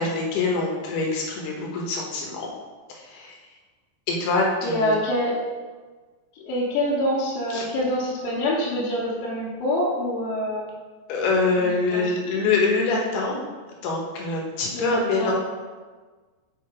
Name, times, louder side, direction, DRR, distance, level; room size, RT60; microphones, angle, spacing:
voice 1, 0.0-2.5 2.9-3.4 4.1-4.9 7.5-7.7 11.1-13.4 13.7-15.3, left 3 dB, 70° left, -1 dB, 3.1 m, -25 dB
voice 2, 4.6-5.4 6.3-10.7 11.6-12.0 14.7-15.3, left 1 dB, 90° left, -9 dB, 3.8 m, -26 dB
7.9 x 5.1 x 5.0 m, 1.4 s
omnidirectional pair, 5.0 m